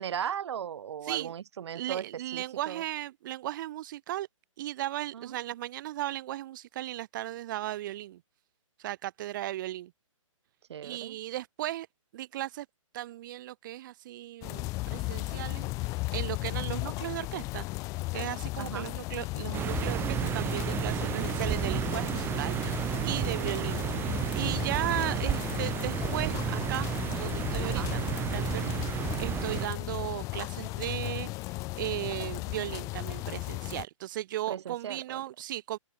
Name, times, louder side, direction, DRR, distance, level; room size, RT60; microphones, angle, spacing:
voice 1, 0.0-2.8 5.1-5.3 10.7-11.2 18.6-18.9 27.6-27.9 34.5-35.2, right 9 dB, 55° right, 1.5 m, -37 dB
voice 2, 1.7-4.3 4.6-8.2 8.8-9.9 10.8-11.9 12.1-12.7 12.9-15.7 16.1-17.7 18.1-26.9 27.2-35.8, right 14 dB, 35° right, 1.6 m, -36 dB
sound 1, 14.4-33.9, left 22 dB, 20° left, 0.9 m, -35 dB
sound 2, 19.5-29.7, right 12 dB, 15° right, 1.1 m, -32 dB
hypercardioid pair, 145°, 17 cm